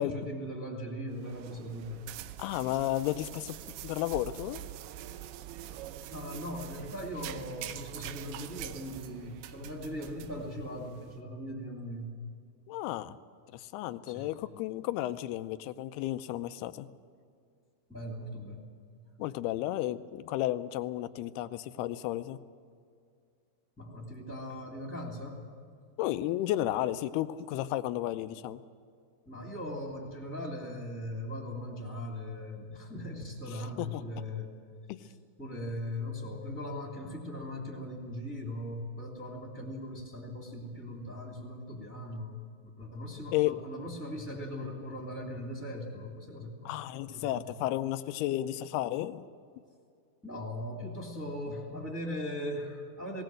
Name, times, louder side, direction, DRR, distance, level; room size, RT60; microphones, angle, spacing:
voice 1, 0.0-2.0 6.1-12.1 14.1-14.3 17.9-18.7 23.8-25.4 29.3-34.5 35.0-35.1 35.4-42.4 42.8-46.7 47.1-47.6 50.2-53.2, left 1 dB, 5° left, -1 dB, 2.2 m, -39 dB
sound 1, 1.1-11.1, right 12 dB, 85° right, 2.7 m, -45 dB
voice 2, 2.4-3.6 3.8-4.6 12.7-13.2 13.5-16.9 19.2-22.4 26.0-28.6 33.8-34.0 34.9-35.0 43.3-43.6 46.7-49.2, left 14 dB, 90° left, 11 dB, 2.7 m, -33 dB
19.5 x 18.5 x 7.8 m, 2.3 s
omnidirectional pair, 4.5 m